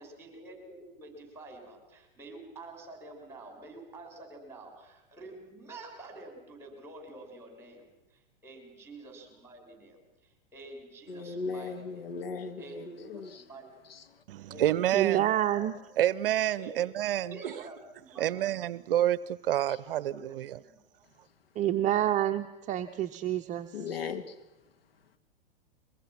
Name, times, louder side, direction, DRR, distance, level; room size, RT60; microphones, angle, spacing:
voice 1, 0.0-12.0 12.6-13.7 14.5-15.2 15.5-15.7 16.6-17.0 17.3-18.7 19.9-20.8, right 2 dB, 10° right, 6.6 m, -48 dB
voice 2, 11.1-13.4 13.9-14.2 19.7-19.8 23.7-24.4, left 4 dB, 80° left, 1.9 m, -38 dB
voice 3, 14.3-15.3 16.0-17.5 18.2-20.6, right 12 dB, 65° right, 0.6 m, -28 dB
voice 4, 14.9-15.7 21.6-23.7, right 12 dB, 25° right, 0.8 m, -28 dB
23.0 x 22.0 x 6.0 m
hypercardioid pair, 115°, 29 cm